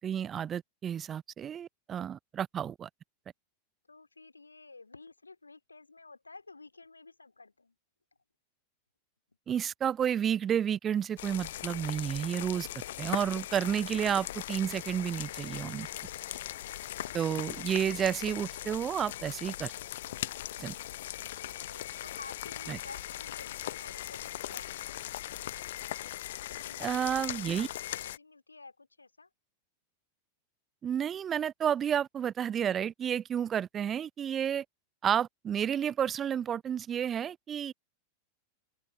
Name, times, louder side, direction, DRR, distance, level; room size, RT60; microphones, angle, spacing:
voice 1, 0.0-2.9 9.5-12.7 13.0-15.9 17.1-19.7 20.6-20.7 22.7-22.8 26.8-27.7 30.8-34.6 35.0-37.7, right 9 dB, 25° right, 0.6 m, -31 dB
voice 2, 3.9-7.8 16.6-17.2 21.3-24.8 26.6-27.4 27.9-29.3, left 3 dB, 80° left, 2.6 m, -52 dB
sound 1, 11.2-28.2, left 13 dB, 55° left, 0.4 m, -39 dB
figure-of-eight pair, 90°, 0 cm